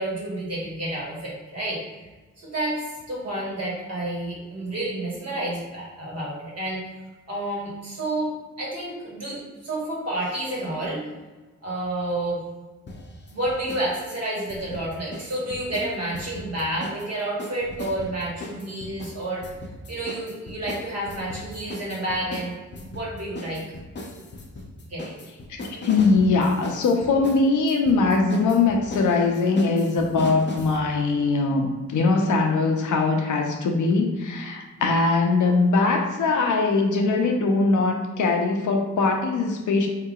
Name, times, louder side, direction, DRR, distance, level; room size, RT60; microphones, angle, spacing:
voice 1, 0.0-1.8 2.4-6.8 7.3-11.0 11.6-12.4 13.3-19.4 19.9-23.6 24.9-25.1, right 1 dB, 55° right, -5 dB, 1.5 m, -30 dB
sound 1, 12.9-13.9 14.1-17.1 17.4-30.8, left 1 dB, 35° left, 0.6 m, -37 dB
voice 2, 25.5-39.9, left 3 dB, 75° left, 3 dB, 0.6 m, -21 dB
3.7 x 2.8 x 2.4 m, 1.2 s
cardioid pair, 75°, 30 cm